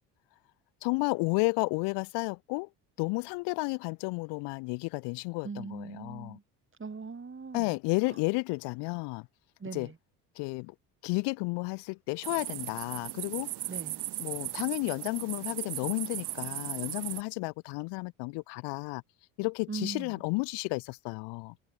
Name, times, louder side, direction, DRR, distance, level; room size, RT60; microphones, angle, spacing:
voice 1, 0.8-2.7 3.0-6.4 7.5-9.3 9.7-9.9 10.4-10.7 11.0-13.5 14.2-19.0 19.4-21.5, left 29 dB, 70° left, 1.1 m, -32 dB
voice 2, 5.4-6.4 6.8-7.8 8.1-8.2 9.6-9.9 13.7-14.0 19.7-20.2, right 5 dB, 30° right, 6.8 m, -40 dB
sound 1, 12.2-17.2, right 16 dB, 65° right, 3.3 m, -37 dB
hypercardioid pair, 65°, 43 cm